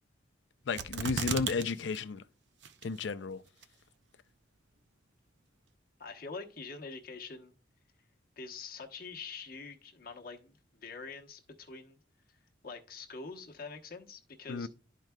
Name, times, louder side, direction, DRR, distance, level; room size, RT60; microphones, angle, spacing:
voice 1, 0.7-2.2 2.8-3.4 14.5-14.7, left 4 dB, 70° left, 0.5 m, -33 dB
sound 1, 0.8-1.6 1.9-2.0 2.6-3.1 3.6-3.7, right 6 dB, 65° right, 0.6 m, -34 dB
voice 2, 6.0-7.5 8.4-12.0 12.3-14.7, left 4 dB, 50° left, 1.0 m, -45 dB
12.0 x 4.6 x 2.2 m
head